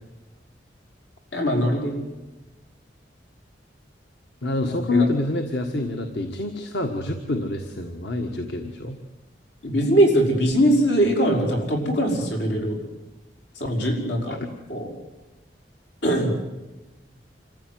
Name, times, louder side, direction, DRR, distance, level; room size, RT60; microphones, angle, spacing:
voice 1, 1.3-2.0 4.6-5.1 9.6-12.8 13.6-14.4 14.7-14.9 16.0-16.3, equal, 90° left, 2 dB, 5.7 m, -21 dB
voice 2, 4.4-9.0 14.4-14.5, left 2 dB, 70° left, 4 dB, 1.7 m, -27 dB
27.0 x 14.5 x 9.4 m, 1.1 s
head